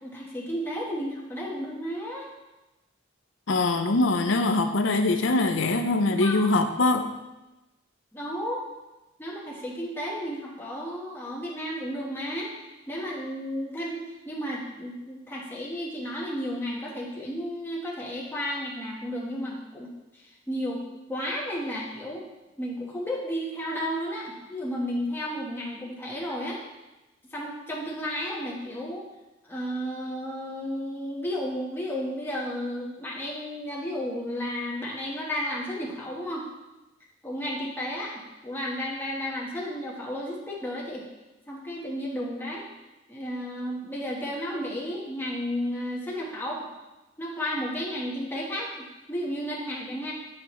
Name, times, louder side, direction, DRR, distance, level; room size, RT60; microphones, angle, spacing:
voice 1, 0.0-2.3 6.1-6.5 8.1-8.6 9.2-12.5 12.9-19.9 20.1-20.8 21.1-22.2 22.6-26.6 27.3-29.1 29.4-36.5 37.2-41.0 41.5-42.6 43.1-46.6 47.2-50.1, equal, 10° left, -4 dB, 1.2 m, -33 dB
voice 2, 3.5-7.1, left 2 dB, 85° left, 7 dB, 0.6 m, -23 dB
8.8 x 4.8 x 3.1 m, 1.0 s
head